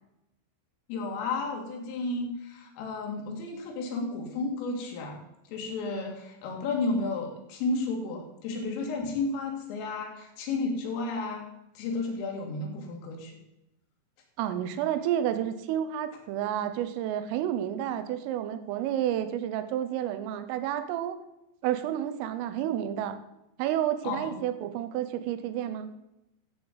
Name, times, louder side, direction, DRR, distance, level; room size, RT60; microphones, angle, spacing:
voice 1, 0.9-5.2 5.5-11.5 11.8-13.4 24.0-24.4, left 3 dB, 85° left, 2 dB, 4.7 m, -32 dB
voice 2, 14.4-21.2 21.6-23.2 23.6-25.9, right 11 dB, 90° right, 10 dB, 3.4 m, -30 dB
13.5 x 7.9 x 5.3 m, 0.88 s
omnidirectional pair, 5.7 m